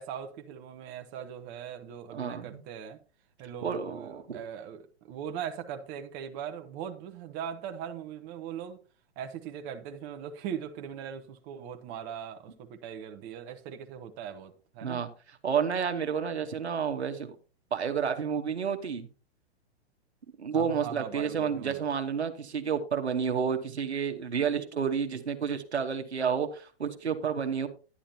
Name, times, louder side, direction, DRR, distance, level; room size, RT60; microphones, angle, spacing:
voice 1, 0.0-3.0 3.4-8.8 9.2-15.0 20.5-21.8, right 8 dB, 35° right, 1.0 m, -40 dB
voice 2, 2.1-2.6 3.6-4.4 14.8-15.1 15.4-17.3 17.7-19.1 20.4-27.7, right 6 dB, 90° right, 1.2 m, -30 dB
10.5 x 10.0 x 2.7 m
hypercardioid pair, 120°, 32 cm